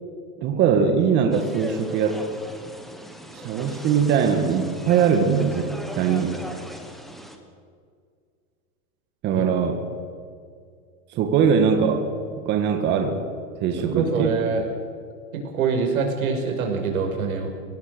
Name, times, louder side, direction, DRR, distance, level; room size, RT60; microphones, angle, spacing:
voice 1, 0.4-2.2 3.3-6.4 9.2-9.8 11.1-12.0 12.4-13.2 13.6-14.3, right 6 dB, 25° right, 5 dB, 1.6 m, -21 dB
sound 1, 1.3-7.4, equal, ahead, 1.3 m, -39 dB
voice 2, 13.9-14.7 15.3-17.5, right 5 dB, 85° right, 3 dB, 5.4 m, -24 dB
24.0 x 17.0 x 6.7 m, 2.2 s
supercardioid pair, 160°, 42 cm